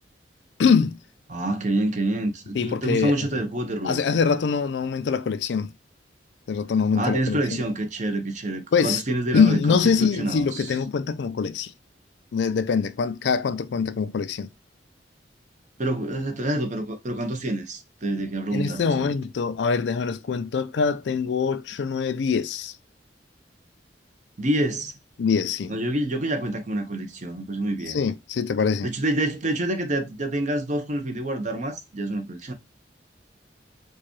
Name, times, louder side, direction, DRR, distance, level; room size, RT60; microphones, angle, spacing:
voice 1, 0.6-1.0 2.5-3.2 3.8-5.7 6.5-7.6 8.7-9.0 9.3-11.7 12.3-14.5 18.5-22.7 25.2-25.8 27.9-28.9, left 5 dB, 70° left, 0.4 m, -23 dB
voice 2, 1.3-4.0 7.0-10.7 15.8-19.1 24.4-24.9 25.7-28.0 28.8-32.5, right 1 dB, 45° right, 0.8 m, -27 dB
4.6 x 2.3 x 3.0 m
head